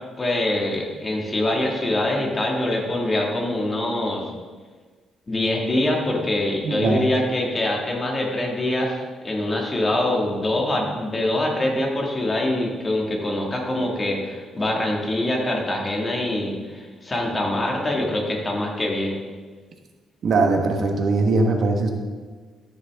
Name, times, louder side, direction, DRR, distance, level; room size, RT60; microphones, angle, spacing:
voice 1, 0.2-4.3 5.3-8.9 9.2-19.2, left 1 dB, 30° left, -1 dB, 2.2 m, -24 dB
voice 2, 6.6-7.0 20.2-21.9, right 3 dB, 60° right, 3 dB, 1.3 m, -20 dB
14.0 x 6.5 x 3.7 m, 1.4 s
cardioid pair, 90°, 0 cm